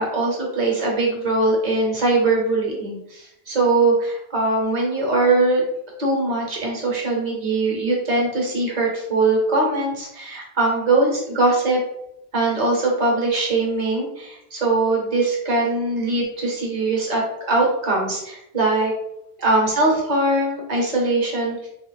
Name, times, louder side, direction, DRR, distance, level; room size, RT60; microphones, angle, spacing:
voice 1, 0.0-5.6 6.0-11.8 12.3-17.2 17.5-18.9 19.4-21.7, right 2 dB, 45° right, -2 dB, 1.0 m, -21 dB
3.0 x 2.4 x 3.1 m, 0.82 s
omnidirectional pair, 1.1 m